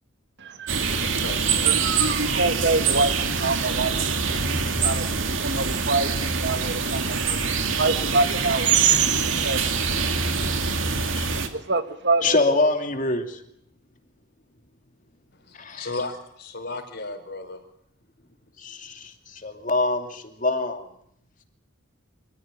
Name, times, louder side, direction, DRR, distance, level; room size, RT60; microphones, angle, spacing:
sound 1, 0.7-11.5, right 5 dB, 80° right, 2.4 m, -25 dB
voice 1, 1.1-1.7 15.3-17.6 19.0-19.1, left 2 dB, 55° left, 4.9 m, -35 dB
voice 2, 1.6-7.4 7.7-9.7 10.4-10.8 11.5-12.4, right 4 dB, 60° right, 1.7 m, -25 dB
voice 3, 10.8-11.3 12.2-13.4 15.6-15.9 18.6-19.1 19.4-20.9, left 2 dB, 40° left, 2.6 m, -25 dB
25.5 x 14.5 x 9.0 m
head